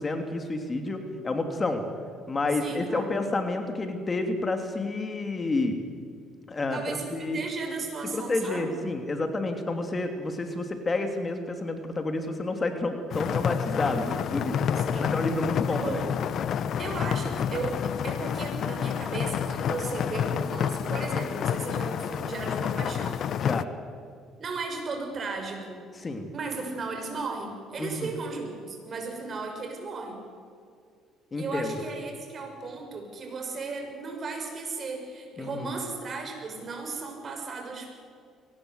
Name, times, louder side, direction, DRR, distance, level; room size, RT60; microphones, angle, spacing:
voice 1, 0.0-1.8 2.3-5.8 6.5-6.8 7.1-7.4 8.1-14.7 15.0-16.1 23.4-23.7 26.0-26.3 27.8-28.1 31.3-31.7 35.4-35.7, left 2 dB, 30° left, 5 dB, 2.7 m, -29 dB
voice 2, 2.6-3.1 6.7-8.7 14.8-15.1 15.7-16.2 16.8-23.2 24.4-25.8 26.3-30.2 31.4-37.9, right 3 dB, 45° right, 4 dB, 6.2 m, -35 dB
sound 1, 13.1-23.6, left 8 dB, 60° left, 0.8 m, -29 dB
23.0 x 19.0 x 8.1 m, 2.2 s
supercardioid pair, 85°, 0 cm